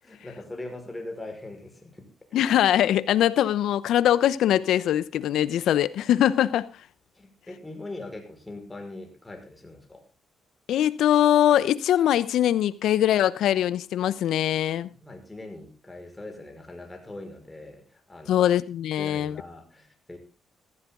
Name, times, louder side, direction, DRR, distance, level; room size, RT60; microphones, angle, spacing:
voice 1, 0.0-2.1 7.2-10.0 14.9-18.4 19.0-20.2, left 2 dB, 15° left, 5.4 m, -41 dB
voice 2, 2.3-6.7 10.7-14.9 18.3-19.4, left 11 dB, 80° left, 0.9 m, -22 dB
15.0 x 14.5 x 3.9 m
cardioid pair, 90°, 0 cm